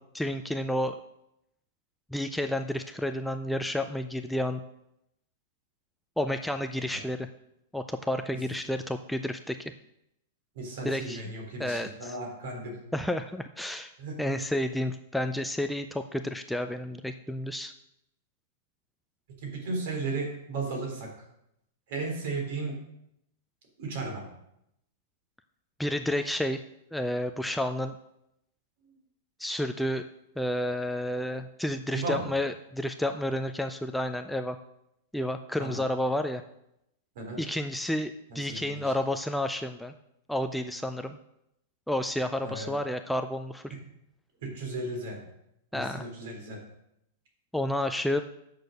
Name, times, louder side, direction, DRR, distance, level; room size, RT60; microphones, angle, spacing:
voice 1, 0.1-1.0 2.1-4.6 6.2-7.3 7.7-9.7 10.8-11.2 11.6-12.2 12.9-13.9 14.2-17.7 25.8-26.6 26.9-27.9 29.4-30.1 30.4-34.6 35.1-36.4 37.4-39.9 40.3-41.2 41.9-43.7 45.7-46.0 47.5-48.2, left 1 dB, ahead, 7 dB, 0.3 m, -30 dB
voice 2, 10.6-12.8 14.0-14.4 19.4-21.1 21.9-22.8 23.8-24.2 31.9-32.2 35.6-35.8 37.2-37.4 38.3-38.9 42.4-42.8 44.4-45.2 45.7-46.6, right 3 dB, 60° right, 1 dB, 3.5 m, -35 dB
8.8 x 6.6 x 6.4 m, 0.81 s
supercardioid pair, 160°, 0 cm